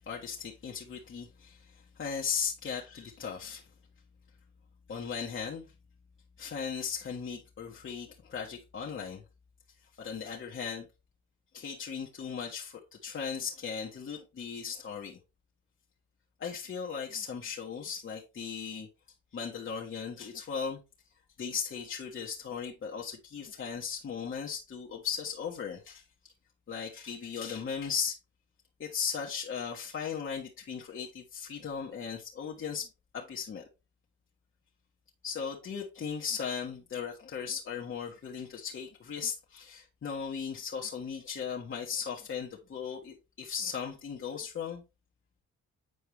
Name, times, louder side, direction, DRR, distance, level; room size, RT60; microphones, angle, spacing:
voice 1, 0.0-3.7 4.9-5.7 6.4-9.2 10.0-10.9 11.5-15.2 16.4-18.9 19.3-20.8 21.4-26.0 26.7-28.2 28.8-32.9 33.1-33.6 35.2-44.8, left 6 dB, 45° left, 1.4 m, -37 dB
8.0 x 4.6 x 3.4 m
cardioid pair, 90°, 30 cm